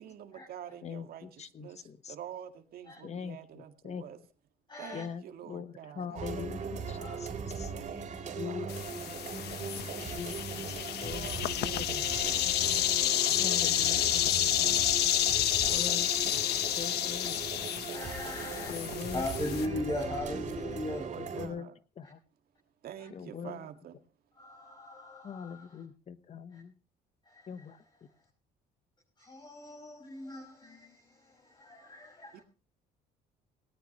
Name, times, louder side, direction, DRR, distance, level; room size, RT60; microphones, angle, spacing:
voice 1, 0.0-4.2 4.8-7.1 7.7-9.0 9.9-12.7 13.9-15.1 15.6-16.4 18.4-19.3 20.5-21.7 22.8-24.0 32.3-32.4, right 9 dB, 65° right, 2.0 m, -47 dB
voice 2, 0.8-2.1 3.0-4.0 4.9-6.6 6.9-7.3 7.5-7.7 8.4-8.7 10.0-10.3 10.7-10.8 11.0-11.3 11.6-12.1 13.4-14.3 15.7-16.1 16.3-16.5 16.8-17.5 18.7-19.2 21.1-21.7 22.0-22.2 23.1-23.6 25.2-26.7 27.5-27.8, left 7 dB, 40° left, 1.2 m, -42 dB
voice 3, 4.7-5.0 7.0-7.1 9.4-9.6 13.4-14.0 17.9-18.8 19.1-21.0 24.4-25.8 26.5-26.6 27.2-27.7 29.2-32.4, left 2 dB, 25° left, 5.9 m, -39 dB
sound 1, 6.2-21.5, right 5 dB, 45° right, 4.1 m, -39 dB
sound 2, 8.7-19.7, left 12 dB, 75° left, 1.3 m, -30 dB
18.5 x 18.5 x 3.1 m
cardioid pair, 110°, 17 cm